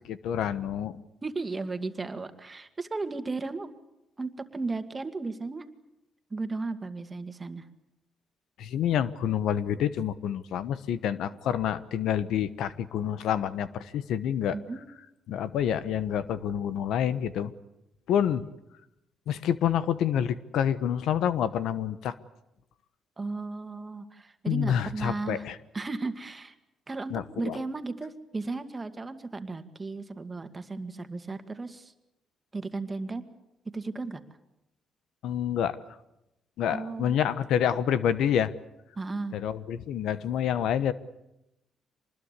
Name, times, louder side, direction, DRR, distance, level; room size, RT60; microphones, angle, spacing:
voice 1, 0.1-1.0 8.6-14.5 15.3-17.5 18.1-18.5 19.3-22.1 24.5-25.6 27.1-27.6 35.2-35.8 36.6-38.5 39.3-40.9, left 9 dB, 80° left, 14 dB, 1.1 m, -28 dB
voice 2, 1.2-3.7 4.2-5.7 6.3-7.7 14.5-14.8 23.2-25.5 25.7-26.5 26.9-31.9 32.5-33.3 33.7-34.2 36.7-37.1 39.0-39.4, right 3 dB, 25° right, 9 dB, 2.0 m, -35 dB
25.0 x 20.5 x 8.3 m, 0.88 s
cardioid pair, 90°, 0 cm